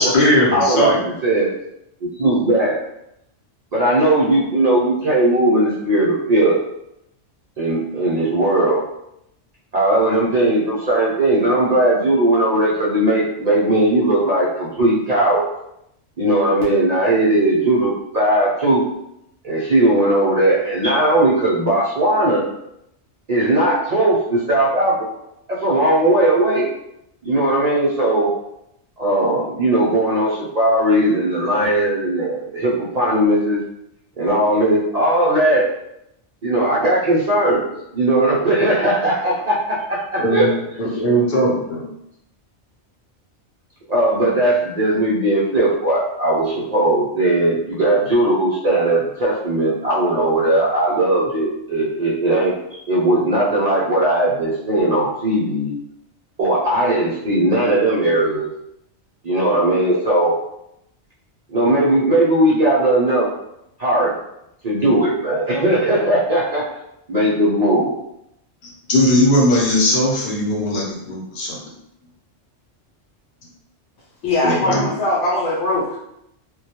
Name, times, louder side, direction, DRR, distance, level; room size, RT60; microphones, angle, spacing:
voice 1, 0.0-1.1 40.2-40.5 40.8-41.9 68.9-71.6 74.4-74.9, equal, 50° left, -3 dB, 0.7 m, -18 dB
voice 2, 0.5-1.5 2.0-2.8 3.7-6.6 7.6-8.8 9.7-15.5 16.2-18.8 19.4-22.5 23.3-25.0 25.5-26.6 27.2-28.3 29.0-33.6 34.2-35.7 36.4-37.7 37.9-40.5 43.9-55.7 56.4-58.5 59.2-60.3 61.5-63.3 63.8-64.1 64.6-66.7 67.1-68.0, right 1 dB, 55° right, -6 dB, 0.4 m, -18 dB
voice 3, 74.2-76.0, left 2 dB, 85° left, -6 dB, 1.0 m, -20 dB
2.2 x 2.2 x 2.8 m, 0.80 s
omnidirectional pair, 1.2 m